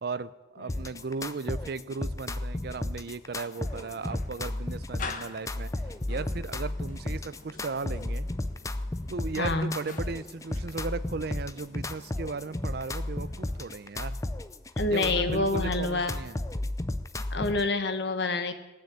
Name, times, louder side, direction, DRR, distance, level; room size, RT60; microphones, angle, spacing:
voice 1, 0.0-5.7 6.1-8.3 9.1-14.2 14.9-16.4, right 4 dB, 60° right, 16 dB, 0.5 m, -36 dB
sound 1, 0.7-17.7, left 1 dB, 15° left, 0.5 m, -34 dB
sound 2, 3.6-13.8, left 4 dB, 45° left, 1.1 m, -47 dB
voice 2, 9.4-9.7 14.8-16.1 17.3-18.5, left 2 dB, 65° left, 8 dB, 1.2 m, -27 dB
17.0 x 6.5 x 8.5 m, 1.1 s
head